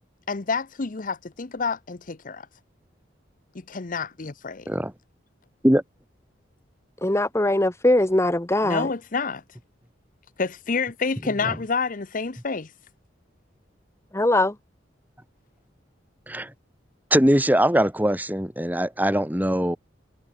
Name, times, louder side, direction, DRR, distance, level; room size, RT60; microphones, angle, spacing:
voice 1, 0.3-2.5 3.7-4.7 8.6-9.4 10.4-12.7, left 4 dB, 45° left, 0.8 m, -28 dB
voice 2, 7.0-8.9 14.1-14.5, left 1 dB, 15° left, 1.0 m, -21 dB
voice 3, 17.1-19.8, right 1 dB, 10° right, 2.8 m, -21 dB
head